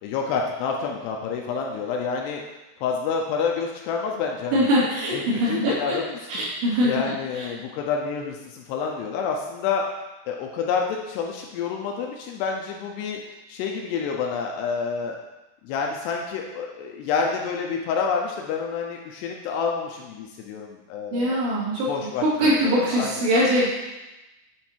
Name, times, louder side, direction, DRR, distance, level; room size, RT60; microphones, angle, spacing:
voice 1, 0.0-2.4 2.8-4.7 5.1-6.0 6.3-6.4 6.8-9.8 10.3-13.2 13.5-15.2 15.6-21.4 21.9-23.1, left 5 dB, 80° left, 1 dB, 2.6 m, -28 dB
voice 2, 4.5-6.0 6.3-6.9 7.3-7.5 21.1-23.7, equal, 70° right, -9 dB, 4.8 m, -22 dB
9.6 x 4.1 x 4.4 m, 1.0 s
omnidirectional pair, 5.2 m